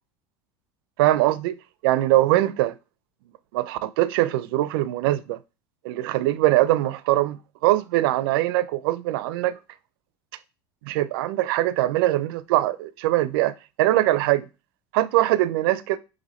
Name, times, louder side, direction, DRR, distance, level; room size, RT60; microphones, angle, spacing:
voice 1, 1.0-1.5 1.8-2.8 3.5-5.4 5.8-9.6 10.8-14.5 14.9-16.0, right 15 dB, 80° right, 0.4 m, -22 dB
4.0 x 2.5 x 4.2 m
supercardioid pair, 115°, 12 cm